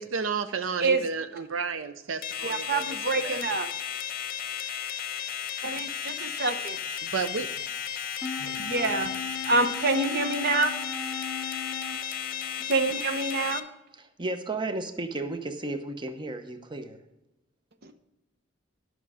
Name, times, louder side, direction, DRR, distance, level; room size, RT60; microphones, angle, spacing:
voice 1, 0.0-2.9 3.2-3.4 7.0-7.5, right 5 dB, 80° right, 10 dB, 0.6 m, -32 dB
sound 1, 2.2-13.6, left 8 dB, 50° left, 0.8 m, -34 dB
voice 2, 2.4-3.7 5.6-6.8 8.4-9.1 9.5-10.7 12.7-13.6 17.8-17.9, right 3 dB, 50° right, 9 dB, 0.9 m, -27 dB
sound 2, 8.2-13.3, left 4 dB, 10° left, 2.1 m, -38 dB
voice 3, 13.9-17.0, right 2 dB, 25° right, 7 dB, 0.8 m, -33 dB
11.5 x 6.1 x 4.9 m, 0.96 s
head